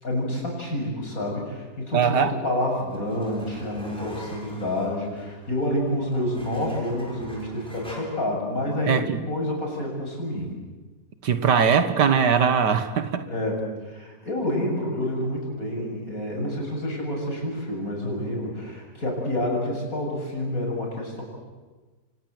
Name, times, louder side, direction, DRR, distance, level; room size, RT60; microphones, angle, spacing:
voice 1, 0.0-10.6 13.3-21.2, left 1 dB, 55° left, 0 dB, 7.9 m, -28 dB
voice 2, 1.9-2.3 8.9-9.2 11.2-13.3, right 6 dB, 80° right, 10 dB, 2.1 m, -21 dB
sound 1, 2.4-8.0, equal, 5° left, 6.6 m, -44 dB
29.0 x 25.0 x 7.8 m, 1.3 s
omnidirectional pair, 1.8 m